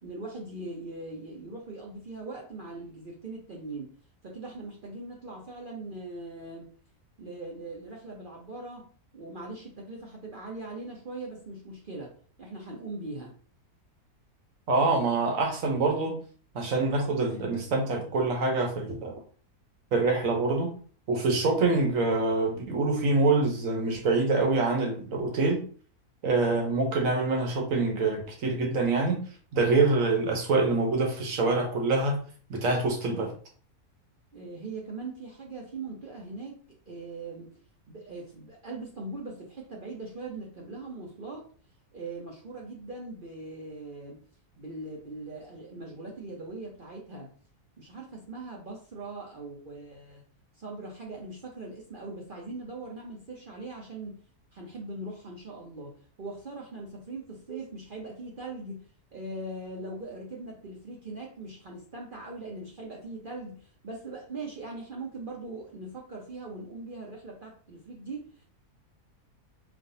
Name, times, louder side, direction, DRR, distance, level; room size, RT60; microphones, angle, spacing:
voice 1, 0.0-3.9 4.2-6.7 7.2-8.9 9.1-13.3 34.3-37.5 37.9-41.5 41.9-44.2 44.6-47.3 47.8-50.2 50.6-54.2 54.5-58.8 59.1-68.5, right 2 dB, 45° right, -1 dB, 0.7 m, -40 dB
voice 2, 14.7-16.2 16.5-19.1 19.9-20.7 21.1-25.6 26.2-29.2 29.5-32.2 32.5-33.3, right 3 dB, 60° right, 2 dB, 1.2 m, -25 dB
5.2 x 2.5 x 2.7 m, 0.43 s
omnidirectional pair, 1.6 m